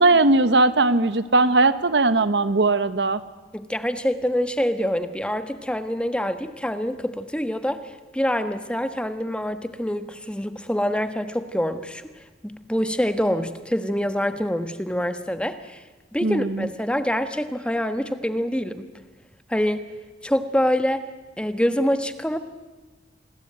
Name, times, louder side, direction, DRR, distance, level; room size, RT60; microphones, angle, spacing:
voice 1, 0.0-3.2 16.2-16.7, right 2 dB, 80° right, 13 dB, 1.2 m, -19 dB
voice 2, 3.5-12.1 12.4-15.8 16.1-18.9 19.5-19.9 20.2-21.0 21.4-22.4, equal, 5° left, 9 dB, 1.3 m, -25 dB
28.0 x 20.5 x 9.1 m, 1.2 s
head